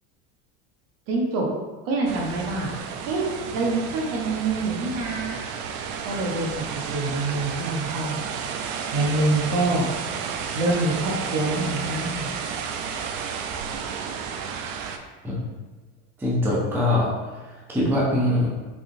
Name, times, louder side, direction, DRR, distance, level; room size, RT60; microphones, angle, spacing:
voice 1, 1.1-1.5 1.9-2.7 3.0-3.3 3.5-5.4 6.0-6.6 6.9-8.2 8.9-9.9 10.5-12.3, right 2 dB, 60° right, -1 dB, 1.0 m, -25 dB
sound 1, 2.1-15.0, right 6 dB, 80° right, 0.5 m, -32 dB
voice 2, 16.2-18.5, left 1 dB, 5° right, -5 dB, 0.5 m, -23 dB
3.9 x 3.6 x 2.6 m, 1.3 s
cardioid pair, 150°, 37 cm